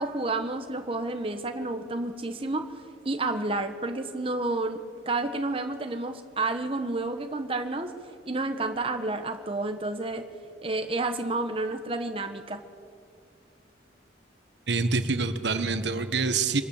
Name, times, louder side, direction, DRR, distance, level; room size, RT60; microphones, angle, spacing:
voice 1, 0.0-2.7 3.0-7.9 8.2-10.2 10.6-12.6, right 2 dB, 30° right, 6 dB, 1.2 m, -30 dB
voice 2, 14.7-16.6, right 4 dB, 75° right, 9 dB, 1.3 m, -26 dB
24.5 x 19.0 x 7.3 m, 2.3 s
head